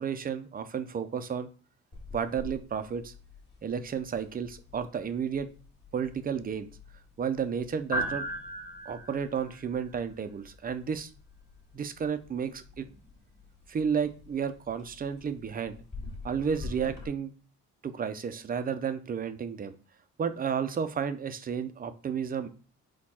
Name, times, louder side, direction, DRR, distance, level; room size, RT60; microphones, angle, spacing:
voice 1, 0.0-1.5 2.1-3.1 3.6-5.5 5.9-6.7 7.2-8.2 8.9-11.1 11.7-12.9 13.7-15.8 16.2-17.3 17.8-19.7 20.2-22.5, right 7 dB, 30° right, 11 dB, 0.5 m, -32 dB
sound 1, 1.9-17.1, equal, 35° left, 1.6 m, -42 dB
4.3 x 2.3 x 4.2 m, 0.37 s
cardioid pair, 90°, 30 cm